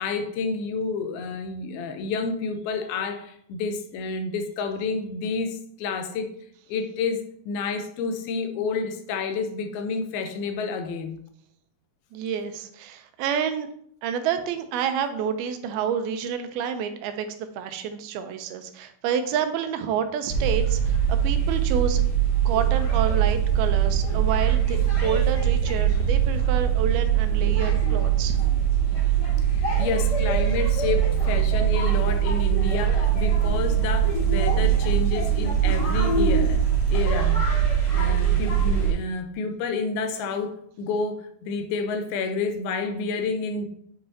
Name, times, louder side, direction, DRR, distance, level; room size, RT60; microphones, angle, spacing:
voice 1, 0.0-6.3 6.7-11.2 29.4-36.6 36.9-37.4 37.9-43.7, left 4 dB, 90° left, 2.6 m, -29 dB
voice 2, 12.1-13.7 14.0-17.3 17.6-22.0 22.5-28.4, right 8 dB, 90° right, 2.5 m, -29 dB
sound 1, 20.3-38.9, right 8 dB, 25° left, 3.0 m, -22 dB
8.1 x 5.5 x 2.8 m
omnidirectional pair, 4.4 m